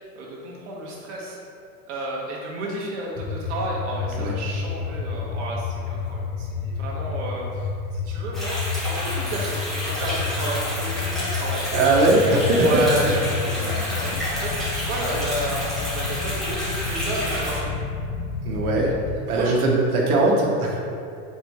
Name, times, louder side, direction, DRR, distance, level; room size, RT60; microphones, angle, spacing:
voice 1, 0.1-1.4 1.9-11.7 12.4-17.7 19.3-19.7 20.7-20.8, right 1 dB, 50° right, -3 dB, 1.1 m, -32 dB
sound 1, 3.2-19.2, left 5 dB, 75° left, 0.5 m, -30 dB
sound 2, 8.3-17.6, equal, ahead, 0.6 m, -30 dB
voice 2, 11.7-12.9 13.7-13.9 18.4-19.0 19.2-20.8, right 2 dB, 70° right, -2 dB, 1.1 m, -20 dB
3.7 x 3.1 x 4.1 m, 2.4 s
supercardioid pair, 165°, 45 cm